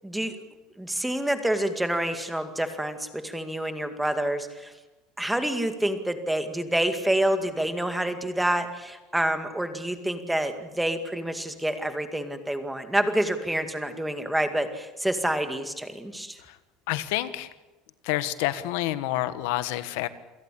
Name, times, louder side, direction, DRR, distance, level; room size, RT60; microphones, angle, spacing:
voice 1, 0.0-0.4 0.8-4.7 5.2-16.4, right 1 dB, 5° right, 7 dB, 2.1 m, -28 dB
voice 2, 16.9-17.5 18.0-20.1, left 15 dB, 80° left, 13 dB, 1.3 m, -28 dB
27.5 x 17.5 x 8.5 m, 1.2 s
cardioid pair, 145°, 0 cm